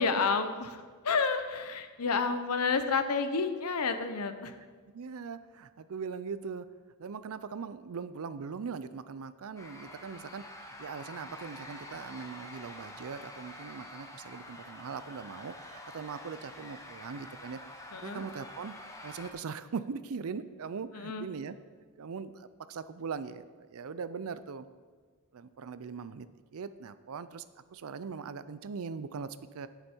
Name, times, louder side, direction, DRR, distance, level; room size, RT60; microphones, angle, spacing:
voice 1, 0.0-4.6 17.9-18.2 20.9-21.3, left 4 dB, 80° left, 9 dB, 0.8 m, -30 dB
voice 2, 4.9-6.7 7.0-10.4 10.8-17.6 18.0-18.7 19.0-21.6 22.0-24.7 25.3-26.3 26.5-27.4 27.7-29.7, right 5 dB, 65° right, 14 dB, 0.5 m, -40 dB
sound 1, 9.6-19.3, left 1 dB, 15° left, 1.0 m, -47 dB
9.7 x 9.0 x 4.5 m, 1.5 s
head